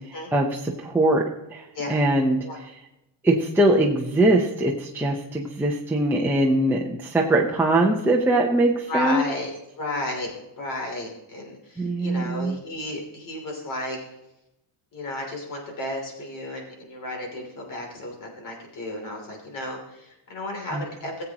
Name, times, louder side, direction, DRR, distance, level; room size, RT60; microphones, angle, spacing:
voice 1, 0.3-1.2 1.5-2.4 3.2-9.2 11.8-12.6 20.7-20.8, right 1 dB, 5° right, -3 dB, 0.8 m, -22 dB
voice 2, 8.9-10.3 10.6-14.0 14.9-21.2, left 1 dB, 45° left, 1 dB, 3.1 m, -33 dB
18.0 x 7.8 x 3.0 m, 0.92 s
cardioid pair, 175°, 43 cm